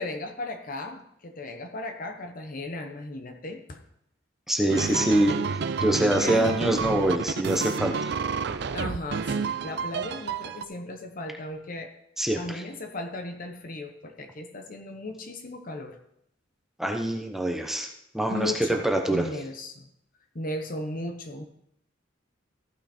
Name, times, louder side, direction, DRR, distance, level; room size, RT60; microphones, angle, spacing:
voice 1, 0.0-3.8 4.8-5.1 6.2-6.8 8.7-11.9 12.4-16.0 18.3-18.8 19.1-19.9 20.3-21.4, left 2 dB, 45° left, 5 dB, 1.0 m, -36 dB
voice 2, 4.5-5.4 5.8-8.1 12.2-12.6 16.8-17.9 18.1-19.2, right 1 dB, ahead, 2 dB, 0.9 m, -24 dB
sound 1, 4.7-10.6, right 5 dB, 60° right, 0.4 m, -30 dB
15.0 x 5.8 x 4.3 m, 0.75 s
head